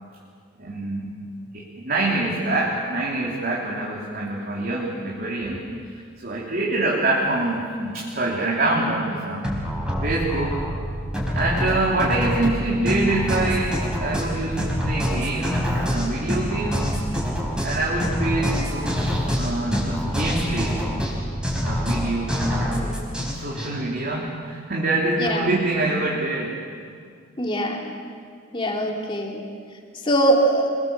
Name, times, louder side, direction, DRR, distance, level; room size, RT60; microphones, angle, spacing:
voice 1, 0.6-1.1 1.5-5.7 6.2-9.5 10.0-10.7 11.3-16.9 17.6-19.0 19.3-20.8 21.6-26.5, right 2 dB, 45° right, -4 dB, 3.5 m, -25 dB
sound 1, 9.4-23.7, equal, 5° right, 5.0 m, -26 dB
voice 2, 27.4-27.9 28.5-29.4 30.0-30.7, right 1 dB, 25° left, 0 dB, 3.1 m, -22 dB
27.5 x 22.5 x 7.4 m, 2.1 s
head